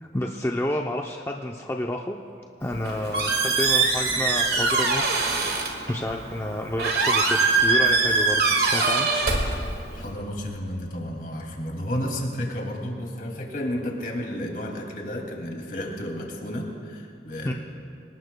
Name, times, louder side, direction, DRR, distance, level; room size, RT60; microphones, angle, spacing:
voice 1, 0.0-2.2 2.6-5.0 5.9-9.1 17.4-17.5, left 1 dB, 15° left, 1 dB, 0.5 m, -30 dB
Squeak, 2.6-10.1, right 3 dB, 60° right, 1.8 m, -23 dB
voice 2, 9.9-17.5, equal, 50° left, 0 dB, 2.5 m, -32 dB
27.0 x 19.0 x 2.3 m, 2.6 s
head